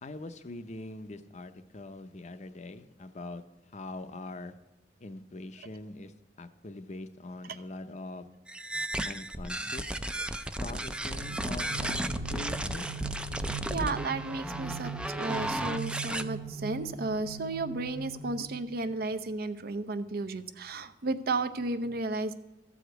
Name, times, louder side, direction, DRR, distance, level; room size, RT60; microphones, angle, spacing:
voice 1, 0.0-3.4 3.7-4.5 5.0-6.1 6.4-8.3 9.0-10.1 10.6-12.9, left 2 dB, 40° left, 10 dB, 0.6 m, -43 dB
sound 1, 8.5-16.2, right 1 dB, 5° right, 0.4 m, -34 dB
sound 2, 11.0-18.9, right 4 dB, 45° right, 1.1 m, -41 dB
voice 2, 13.7-22.3, right 3 dB, 60° right, 11 dB, 0.6 m, -33 dB
13.0 x 5.0 x 7.9 m, 1.0 s
head